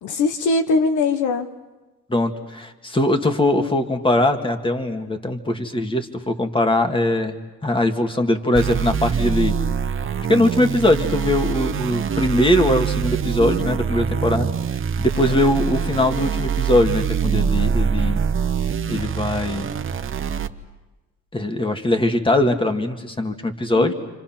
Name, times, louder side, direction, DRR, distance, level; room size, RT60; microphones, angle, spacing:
voice 1, 0.0-1.5 15.1-15.4 23.7-23.9, left 3 dB, 75° left, 8 dB, 1.2 m, -21 dB
voice 2, 2.1-9.6 10.3-14.5 15.0-18.2 18.9-19.7 21.3-23.9, left 1 dB, 15° left, 5 dB, 2.1 m, -21 dB
sound 1, 8.5-20.5, right 7 dB, 45° right, 1.0 m, -24 dB
30.0 x 26.0 x 6.0 m, 1.1 s
cardioid pair, 90°, 30 cm